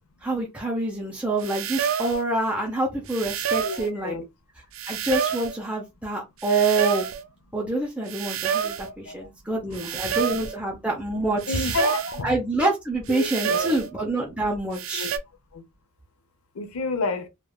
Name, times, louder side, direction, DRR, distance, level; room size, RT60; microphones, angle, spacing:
voice 1, 0.2-4.2 4.9-7.1 7.5-11.8 12.2-15.1, right 2 dB, 5° right, 0.6 m, -26 dB
sound 1, 1.4-2.2 3.1-3.9 4.7-5.6 6.4-7.2 8.1-8.9 9.7-10.6 11.4-12.2 13.1-13.9 14.7-15.2, right 8 dB, 60° right, 0.4 m, -28 dB
voice 2, 3.6-4.2 8.6-9.2 10.0-10.1 11.5-12.4 13.1-13.8 15.0-15.1 15.5-15.6 16.6-17.3, left 3 dB, 75° left, 0.6 m, -30 dB
3.3 x 2.3 x 2.2 m
head